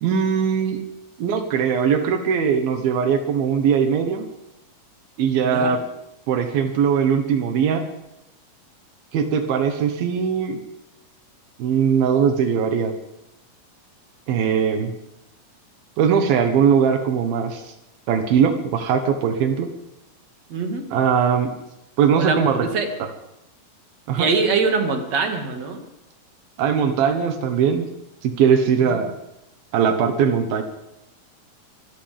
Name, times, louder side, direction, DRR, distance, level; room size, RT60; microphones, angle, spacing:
voice 1, 0.0-0.8 1.2-4.3 5.2-5.8 6.3-7.9 9.1-10.6 11.6-12.9 14.3-14.9 16.0-17.7 18.1-19.7 20.9-21.5 22.0-22.7 24.1-24.3 26.6-27.9 28.2-29.1 29.7-30.6, right 7 dB, 85° right, 6 dB, 3.1 m, -20 dB
voice 2, 5.4-5.8 20.5-20.8 22.2-22.9 24.2-25.8 28.8-29.0, right 4 dB, 50° right, 4 dB, 2.8 m, -23 dB
25.0 x 15.5 x 3.5 m, 0.90 s
omnidirectional pair, 4.2 m